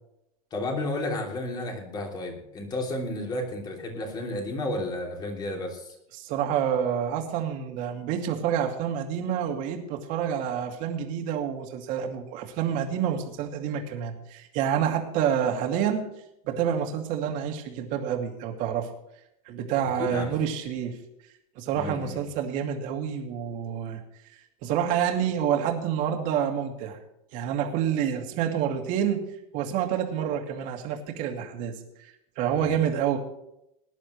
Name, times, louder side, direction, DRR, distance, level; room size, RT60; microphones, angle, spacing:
voice 1, 0.5-6.0 19.8-20.3 21.7-22.2 32.5-32.8, left 2 dB, 20° left, 2 dB, 3.1 m, -32 dB
voice 2, 6.1-16.0 16.4-18.9 19.5-21.0 21.6-24.0 24.6-27.0 27.3-29.2 29.5-31.8 32.4-33.2, right 9 dB, 45° right, 3 dB, 2.4 m, -28 dB
20.0 x 11.0 x 3.2 m, 0.81 s
supercardioid pair, 165°, 19 cm